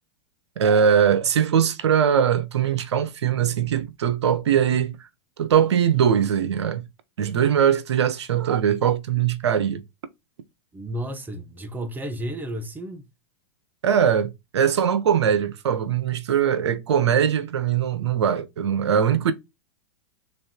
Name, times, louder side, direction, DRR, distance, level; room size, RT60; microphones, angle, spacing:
voice 1, 0.6-5.0 5.4-6.8 7.2-9.8 13.8-19.3, right 8 dB, 85° right, 0.8 m, -21 dB
voice 2, 10.7-13.0, right 1 dB, 15° right, 1.1 m, -32 dB
3.6 x 3.3 x 4.4 m
hypercardioid pair, 115°, 14 cm